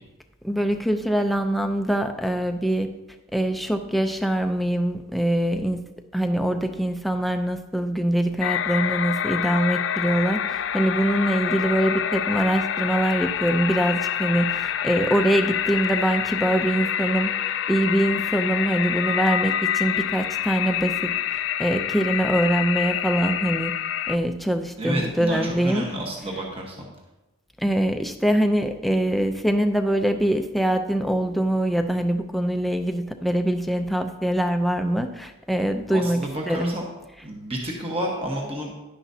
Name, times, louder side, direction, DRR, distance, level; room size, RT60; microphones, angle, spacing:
voice 1, 0.4-2.9 3.3-5.8 6.1-17.3 17.7-23.7 24.1-25.9 26.2-26.4 27.6-36.8 37.2-37.3, right 1 dB, ahead, 6 dB, 0.5 m, -23 dB
sound 1, 8.4-24.2, left 9 dB, 65° left, 0.3 m, -27 dB
voice 2, 24.8-26.7 35.9-36.8 37.2-38.7, right 1 dB, 25° right, -1 dB, 1.2 m, -30 dB
11.0 x 10.0 x 2.8 m, 1.0 s
head